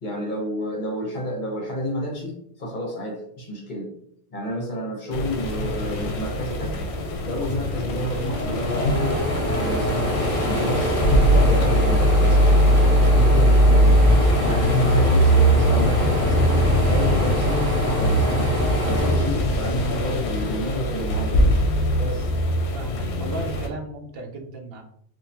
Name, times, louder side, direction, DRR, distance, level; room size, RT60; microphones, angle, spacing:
voice 1, 0.0-3.9 4.3-6.8 7.2-9.2 9.4-10.2 10.5-11.0 11.3-14.1 14.4-16.5 16.9-18.5 18.9-21.4 22.0-22.3, equal, 45° left, 0 dB, 1.0 m, -30 dB
sound 1, 5.1-23.7, equal, 75° left, 0.8 m, -21 dB
sound 2, 7.5-20.1 20.5-21.6, equal, 15° left, 1.1 m, -26 dB
voice 2, 22.7-24.8, right 2 dB, 65° right, 5 dB, 0.8 m, -36 dB
3.6 x 2.4 x 2.8 m, 0.67 s
omnidirectional pair, 1.1 m